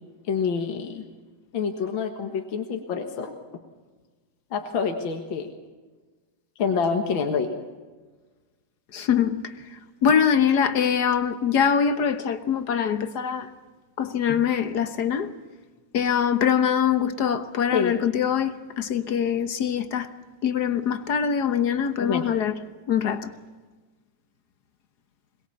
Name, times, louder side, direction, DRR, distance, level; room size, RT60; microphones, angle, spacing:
voice 1, 0.3-1.0 1.5-3.3 4.5-5.5 6.6-7.6 17.7-18.1 22.0-22.3, left 6 dB, 75° left, 2.3 m, -27 dB
voice 2, 8.9-9.6 10.0-13.5 14.0-15.3 15.9-20.1 20.4-22.6 22.9-23.3, left 7 dB, 55° left, 1.6 m, -23 dB
22.5 x 21.0 x 7.0 m
omnidirectional pair, 2.2 m